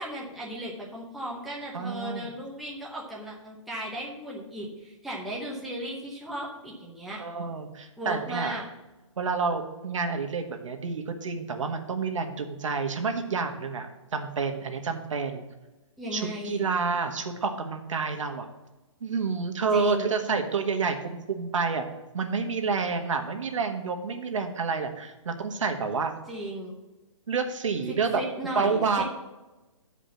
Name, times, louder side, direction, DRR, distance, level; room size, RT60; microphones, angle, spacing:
voice 1, 0.0-7.2 8.0-8.6 16.0-16.6 19.7-20.2 26.3-26.8 27.9-29.0, right 1 dB, ahead, -6 dB, 0.8 m, -36 dB
voice 2, 1.7-2.3 7.2-8.5 9.2-15.4 16.1-18.5 19.0-21.9 22.1-26.1 27.3-28.2 28.5-29.0, right 5 dB, 75° right, 5 dB, 1.5 m, -29 dB
8.6 x 5.0 x 7.0 m, 1.1 s
hypercardioid pair, 170°, 17 cm